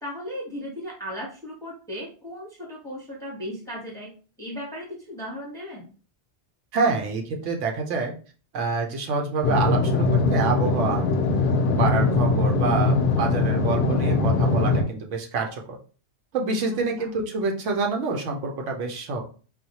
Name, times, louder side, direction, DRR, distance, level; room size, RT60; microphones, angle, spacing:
voice 1, 0.0-4.1 4.4-5.9 16.7-17.1, equal, 5° left, -3 dB, 0.8 m, -36 dB
voice 2, 6.7-8.1 8.5-11.1 11.8-15.8 16.3-19.2, right 4 dB, 90° right, 2 dB, 1.0 m, -27 dB
sound 1, 9.4-14.8, left 3 dB, 60° left, 0.6 m, -21 dB
4.1 x 2.1 x 2.8 m, 0.38 s
omnidirectional pair, 1.2 m